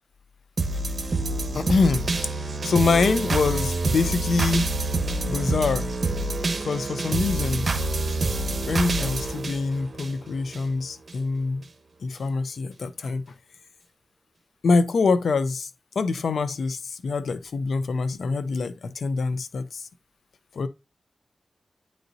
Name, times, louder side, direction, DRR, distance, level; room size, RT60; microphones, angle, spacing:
sound 1, 0.6-10.6 11.1-11.2, right 2 dB, 60° right, 1.1 m, -27 dB
voice 1, 1.5-2.3 2.6-4.7 5.2-5.9 6.6-7.7 8.7-11.6 12.0-13.2 14.6-15.7 15.9-19.9 20.5-20.7, left 4 dB, 85° left, 0.6 m, -25 dB
9.1 x 4.1 x 2.7 m
cardioid pair, 45°, 0 cm